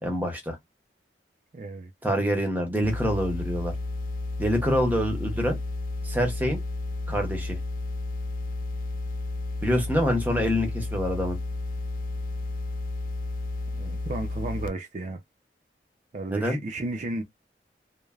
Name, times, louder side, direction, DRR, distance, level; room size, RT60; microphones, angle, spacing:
voice 1, 0.0-0.6 2.0-3.7 4.4-5.6 6.0-6.6 7.1-7.6 9.6-11.4 16.3-16.6, equal, 10° right, 0.7 m, -26 dB
voice 2, 1.5-1.9 13.8-15.2 16.1-17.2, right 2 dB, 40° right, 0.4 m, -33 dB
sound 1, 2.8-14.7, left 2 dB, 50° left, 0.3 m, -32 dB
3.1 x 2.0 x 2.3 m
head